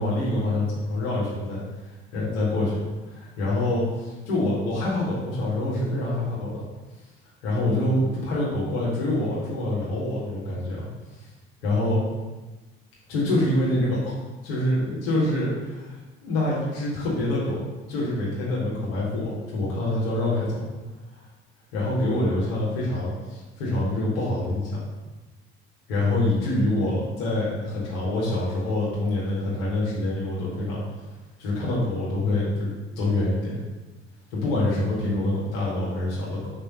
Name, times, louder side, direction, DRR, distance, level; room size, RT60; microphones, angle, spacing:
voice 1, 0.0-1.6 2.1-2.8 3.1-6.6 7.4-10.9 11.6-12.0 13.1-14.1 14.4-15.9 16.2-17.6 17.9-20.6 21.7-24.8 25.9-30.8 31.4-33.6 34.3-36.5, left 1 dB, 65° left, -6 dB, 2.1 m, -26 dB
5.4 x 5.2 x 5.4 m, 1.2 s
figure-of-eight pair, 55°, 32 cm